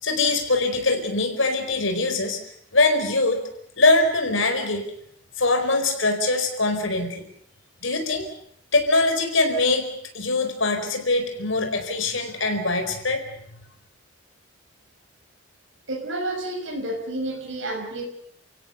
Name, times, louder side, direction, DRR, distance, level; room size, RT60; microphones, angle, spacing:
voice 1, 0.0-2.4 2.7-3.4 3.8-4.8 5.4-7.2 7.8-8.3 8.7-9.9 10.1-13.2, left 2 dB, 80° left, 6 dB, 4.6 m, -22 dB
voice 2, 15.9-18.1, right 1 dB, 70° right, 1 dB, 5.9 m, -30 dB
29.5 x 16.5 x 6.9 m, 0.69 s
head